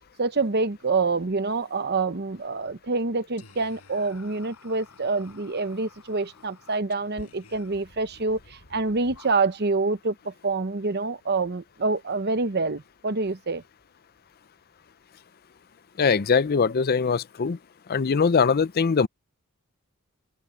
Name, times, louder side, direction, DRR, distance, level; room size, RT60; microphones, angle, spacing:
voice 1, 0.2-13.6, right 3 dB, 50° right, 1.0 m, -26 dB
Whispering, 3.4-9.8, left 3 dB, 85° left, 6.8 m, -52 dB
voice 2, 16.0-17.6 17.9-19.1, left 5 dB, 45° left, 0.5 m, -21 dB
open air
head